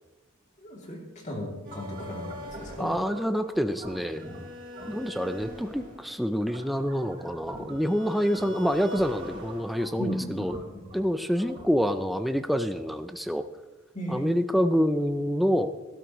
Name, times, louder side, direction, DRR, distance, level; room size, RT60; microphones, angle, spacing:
voice 1, 0.6-2.9 4.2-4.3 10.0-10.8 13.9-14.3, equal, 35° left, -2 dB, 2.8 m, -36 dB
sound 1, 1.6-12.0, equal, 40° right, 4.6 m, -43 dB
voice 2, 2.8-4.3 4.9-10.6 10.9-13.5 14.1-15.7, equal, ahead, 8 dB, 0.4 m, -27 dB
17.5 x 12.5 x 3.1 m, 1.2 s
head